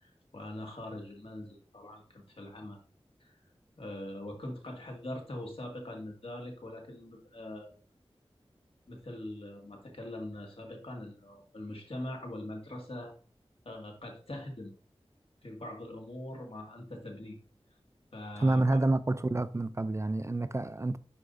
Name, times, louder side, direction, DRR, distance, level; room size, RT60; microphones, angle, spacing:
voice 1, 0.0-2.8 3.2-3.4 3.8-7.7 8.9-13.1 13.7-14.7 15.4-17.4 18.1-18.8, left 1 dB, 60° left, 2.0 m, -42 dB
voice 2, 18.4-21.0, right 2 dB, 25° right, 0.4 m, -28 dB
9.8 x 4.7 x 2.6 m
wide cardioid pair, 60°, 11 cm